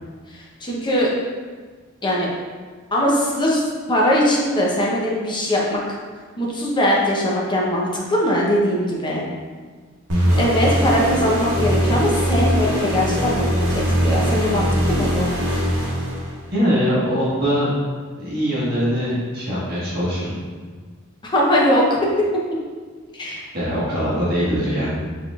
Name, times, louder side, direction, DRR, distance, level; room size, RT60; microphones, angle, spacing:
voice 1, 0.3-1.1 2.0-2.3 2.9-3.6 3.9-6.0 6.4-9.2 10.4-15.3 21.2-22.4 23.1-23.4, equal, 20° left, -4 dB, 0.7 m, -20 dB
sound 1, 10.1-16.6, equal, 70° right, 1.0 m, -21 dB
voice 2, 16.5-17.7 18.2-20.3 23.5-24.9, equal, 45° right, -9 dB, 1.4 m, -22 dB
4.7 x 3.5 x 2.4 m, 1.5 s
head